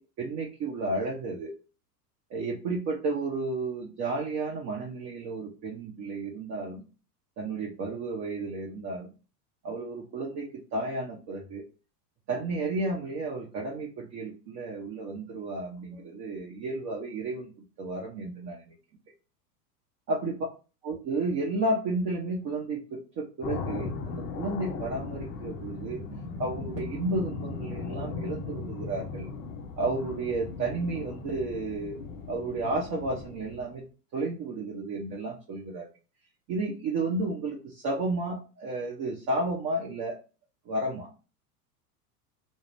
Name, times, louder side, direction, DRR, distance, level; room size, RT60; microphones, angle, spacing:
voice 1, 0.2-1.5 2.3-6.8 7.4-9.1 9.6-11.6 12.3-17.5 17.8-18.7 20.1-20.3 20.8-26.0 26.4-29.3 29.8-32.0 32.3-33.8 34.1-35.8 36.5-40.2 40.7-41.1, right 2 dB, 35° right, -2 dB, 0.9 m, -32 dB
sound 1, 23.4-33.8, left 4 dB, 25° left, 0.5 m, -37 dB
2.3 x 2.2 x 3.3 m, 0.34 s
figure-of-eight pair, 85°, 48 cm